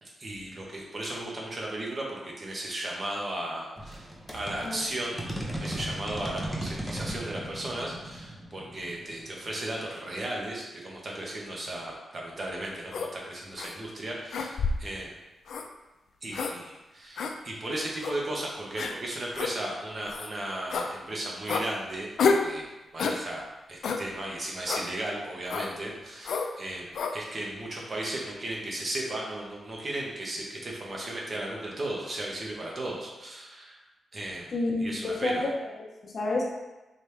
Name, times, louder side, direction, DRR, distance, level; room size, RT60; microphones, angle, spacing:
voice 1, 0.0-5.3 5.6-15.1 16.2-22.7 22.9-23.4 23.7-33.8 34.1-34.5 34.8-35.4, right 1 dB, 35° right, -2 dB, 1.0 m, -35 dB
sound 1, 3.8-10.2, right 1 dB, 5° right, 0.7 m, -38 dB
sound 2, 12.9-13.1 13.6-13.7 14.3-14.9 15.5-15.7 16.3-16.5 17.2-17.3 18.0-18.2 18.8-18.9 19.3-19.5 20.1-20.3 20.7-20.9 21.5-21.7 22.2-22.5 23.0-23.2 23.8-24.0 24.7-24.9 25.5-25.7 26.2-26.5 26.9-27.2, left 4 dB, 80° left, 0.3 m, -28 dB
voice 2, 34.5-36.5, left 2 dB, 45° left, -2 dB, 1.0 m, -30 dB
4.1 x 3.4 x 3.2 m, 1.0 s
wide cardioid pair, 130°, 0 cm